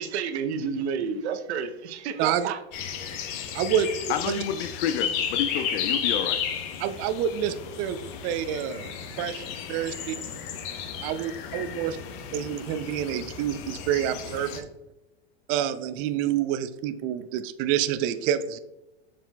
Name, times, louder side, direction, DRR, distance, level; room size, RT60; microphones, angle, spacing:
voice 1, 0.0-2.6, right 6 dB, 80° right, 0.9 m, -30 dB
sound 1, 2.7-14.6, left 7 dB, 50° left, 1.0 m, -33 dB
voice 2, 3.5-3.9 4.3-4.4 6.8-8.0 8.2-8.8 9.2-10.2 11.0-12.0 12.3-14.7 15.5-18.6, right 10 dB, 40° right, 0.4 m, -28 dB
voice 3, 4.1-6.4, left 9 dB, 70° left, 0.5 m, -29 dB
7.2 x 5.9 x 2.3 m
hypercardioid pair, 120°, 33 cm